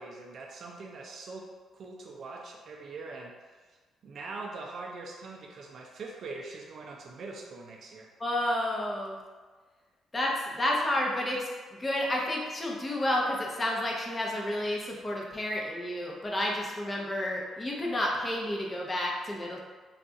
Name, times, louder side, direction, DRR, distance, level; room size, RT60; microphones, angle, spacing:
voice 1, 0.0-1.5 1.7-3.8 4.0-8.1, right 3 dB, 55° right, 0 dB, 0.4 m, -43 dB
voice 2, 8.2-9.2 10.1-11.5 11.8-19.6, left 1 dB, 25° left, -2 dB, 0.7 m, -30 dB
2.4 x 2.3 x 3.9 m, 1.4 s
cardioid pair, 90°, 0 cm